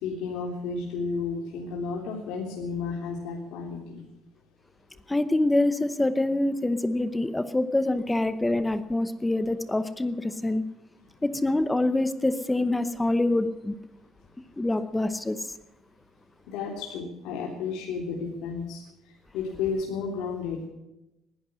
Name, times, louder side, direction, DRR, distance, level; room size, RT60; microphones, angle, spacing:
voice 1, 0.0-4.0 16.5-18.8 19.3-20.7, left 5 dB, 80° left, -1 dB, 3.4 m, -32 dB
voice 2, 5.1-10.6 11.2-13.8 14.6-15.4, left 2 dB, 10° left, 12 dB, 0.8 m, -25 dB
19.5 x 11.5 x 6.3 m, 0.93 s
cardioid pair, 155°, 0 cm